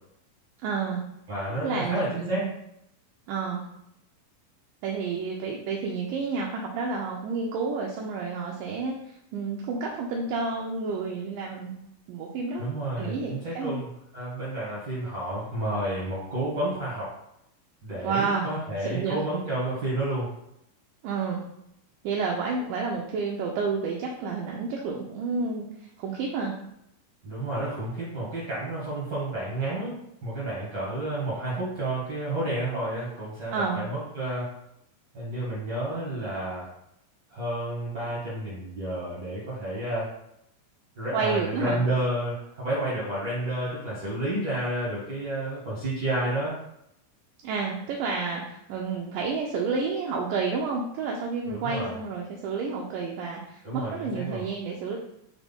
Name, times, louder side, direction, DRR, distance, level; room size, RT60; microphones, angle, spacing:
voice 1, 0.6-1.0 1.6-2.5 3.3-3.6 4.8-11.7 12.1-12.6 13.0-13.7 18.0-18.5 18.9-19.2 21.0-21.4 22.0-25.7 26.0-26.6 33.5-33.8 41.1-41.8 47.4-55.0, right 4 dB, 80° right, -2 dB, 2.0 m, -30 dB
voice 2, 1.3-2.5 12.6-17.1 17.8-20.3 27.2-29.9 30.2-34.5 35.1-36.7 37.3-40.1 40.9-46.5 51.5-52.0 53.6-54.4, right 1 dB, 60° right, -8 dB, 1.1 m, -30 dB
5.9 x 2.1 x 3.5 m, 0.79 s
omnidirectional pair, 4.1 m